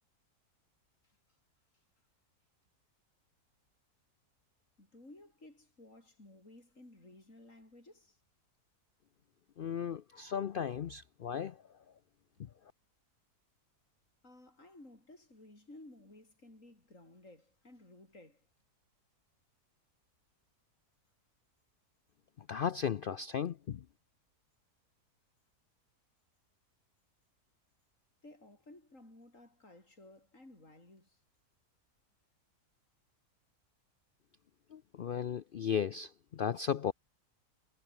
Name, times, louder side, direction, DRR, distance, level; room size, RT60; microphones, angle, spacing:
voice 1, 4.8-8.2 14.2-18.5 28.2-31.2, left 2 dB, 55° left, 7.9 m, -56 dB
voice 2, 9.6-11.6 22.4-23.8 34.7-36.9, left 8 dB, 75° left, 0.5 m, -35 dB
omnidirectional pair, 1.6 m